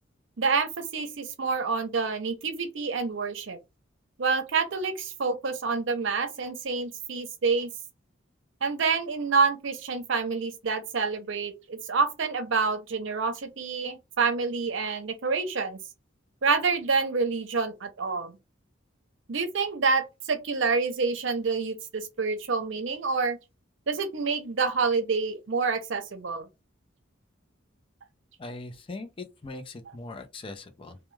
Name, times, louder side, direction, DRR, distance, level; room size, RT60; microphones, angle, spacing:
voice 1, 0.4-3.6 4.2-7.7 8.6-15.8 16.4-18.4 19.3-23.4 23.9-26.5, right 4 dB, 65° right, 0.6 m, -27 dB
voice 2, 28.4-31.0, left 2 dB, 25° left, 0.5 m, -40 dB
2.2 x 2.2 x 3.1 m
head